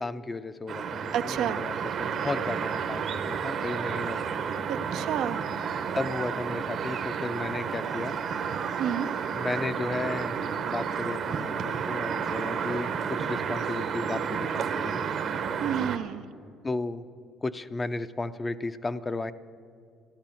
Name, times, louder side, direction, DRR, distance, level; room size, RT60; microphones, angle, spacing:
voice 1, 0.0-4.4 5.9-8.1 9.3-15.0 16.6-17.1 17.4-19.3, left 3 dB, 20° left, 13 dB, 0.5 m, -34 dB
sound 1, 0.7-16.0, right 6 dB, 55° right, 0.9 m, -31 dB
voice 2, 1.1-1.6 4.7-5.4 8.8-9.1 15.6-16.2, right 9 dB, 70° right, 11 dB, 0.5 m, -30 dB
13.5 x 11.5 x 7.1 m, 2.2 s
cardioid pair, 100°, 0 cm